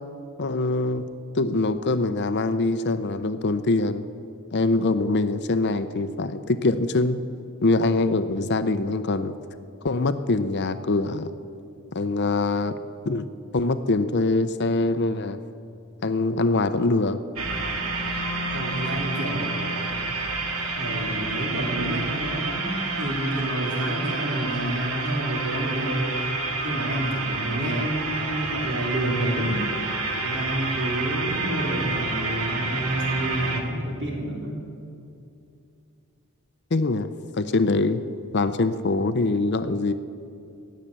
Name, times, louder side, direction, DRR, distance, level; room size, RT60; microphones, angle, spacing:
voice 1, 0.4-1.1 1.3-4.1 4.5-7.2 7.6-9.3 9.8-11.3 11.9-12.8 13.0-13.3 13.5-15.4 16.0-17.2 36.7-38.0 38.3-39.9, left 2 dB, 50° left, 11 dB, 0.6 m, -23 dB
sound 1, 17.4-33.6, right 3 dB, 70° right, 1.7 m, -29 dB
voice 2, 18.5-19.9 20.8-26.2 26.6-29.6 30.2-34.6, right 1 dB, 55° right, -2 dB, 3.7 m, -29 dB
17.0 x 7.5 x 9.9 m, 2.5 s
head